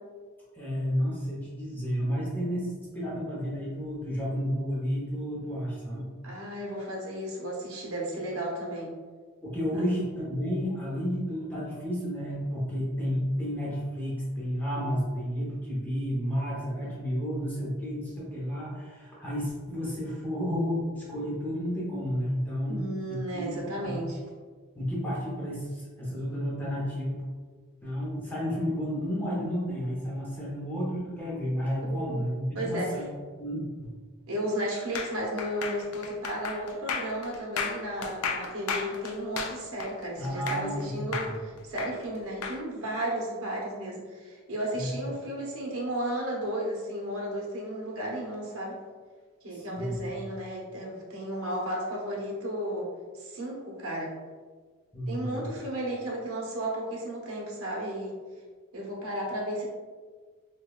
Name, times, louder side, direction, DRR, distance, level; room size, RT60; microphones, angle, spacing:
voice 1, 0.5-6.1 9.4-23.5 23.8-23.9 24.7-27.2 27.8-33.1 33.4-33.9 40.2-41.3 44.7-44.9 49.5-50.1 54.9-55.4, equal, 10° left, -7 dB, 0.7 m, -31 dB
voice 2, 6.2-9.0 9.7-9.8 22.7-24.2 31.8-32.2 32.5-32.9 34.3-48.8 49.4-52.9 53.1-54.1 55.1-58.1 58.7-59.7, right 1 dB, 75° right, -3 dB, 0.8 m, -34 dB
sound 1, 35.0-40.8 41.1-42.6, left 5 dB, 75° left, 0.4 m, -34 dB
5.0 x 2.2 x 2.3 m, 1.5 s
head